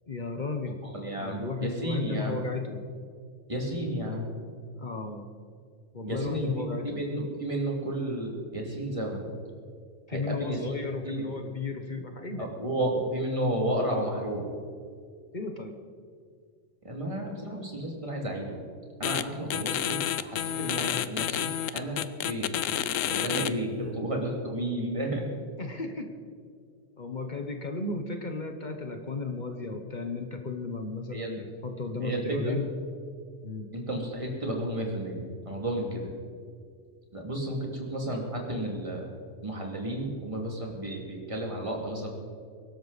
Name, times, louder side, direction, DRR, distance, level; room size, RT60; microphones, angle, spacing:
voice 1, 0.1-0.8 1.2-2.8 4.8-5.3 5.9-7.0 10.1-12.5 15.3-15.7 23.7-24.0 25.6-26.1 27.0-32.7 33.4-33.7, left 3 dB, 40° left, 5 dB, 1.2 m, -34 dB
voice 2, 0.8-2.4 3.5-4.4 6.1-9.3 10.1-10.6 11.0-11.2 12.4-14.4 16.8-18.6 19.0-22.6 23.1-25.2 31.1-31.3 32.0-32.6 33.7-35.2 35.5-36.1 37.1-39.1 39.4-42.1, right 1 dB, 25° right, -1 dB, 2.7 m, -32 dB
sound 1, 19.0-19.2 19.5-23.5, left 11 dB, 85° left, 1.0 m, -29 dB
22.5 x 12.5 x 4.1 m, 2.1 s
omnidirectional pair, 1.3 m